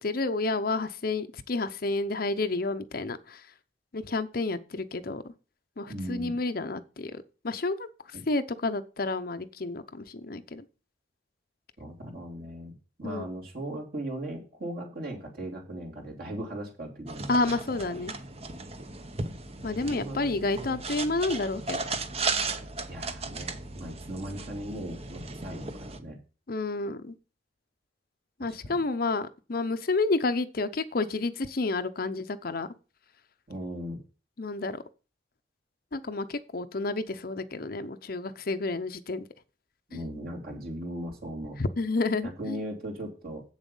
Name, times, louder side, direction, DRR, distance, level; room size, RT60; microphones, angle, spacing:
voice 1, 0.0-3.4 3.9-5.3 5.8-7.9 8.3-10.6 13.0-13.3 17.3-18.1 19.6-21.8 26.5-27.1 28.4-32.7 34.4-34.8 35.9-39.2 39.9-40.1 41.6-42.6, left 3 dB, 50° left, 0.7 m, -30 dB
voice 2, 5.9-6.3 8.1-8.2 11.8-12.7 13.0-17.5 19.8-20.2 20.5-20.8 22.9-26.2 28.4-28.8 33.5-34.0 39.9-41.6 42.2-43.4, right 1 dB, 50° right, 3.2 m, -38 dB
sound 1, 17.1-26.0, right 3 dB, 35° right, 0.9 m, -36 dB
8.1 x 7.2 x 5.4 m
head